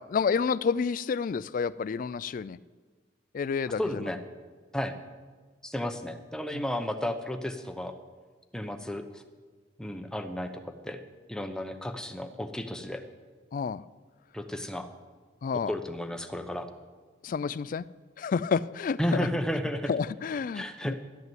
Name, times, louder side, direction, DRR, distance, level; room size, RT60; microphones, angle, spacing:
voice 1, 0.0-2.6 3.3-4.0 6.5-6.6 13.5-13.8 15.4-15.7 17.2-17.9 18.2-19.3 19.9-20.9, left 5 dB, 45° left, 17 dB, 0.3 m, -29 dB
voice 2, 3.7-4.2 4.7-4.9 5.6-7.9 8.5-9.2 9.8-11.0 11.3-13.0 14.3-14.9 15.7-16.7 19.0-19.9 20.5-20.9, left 1 dB, 5° left, 6 dB, 0.7 m, -33 dB
12.0 x 8.1 x 7.7 m, 1.4 s
head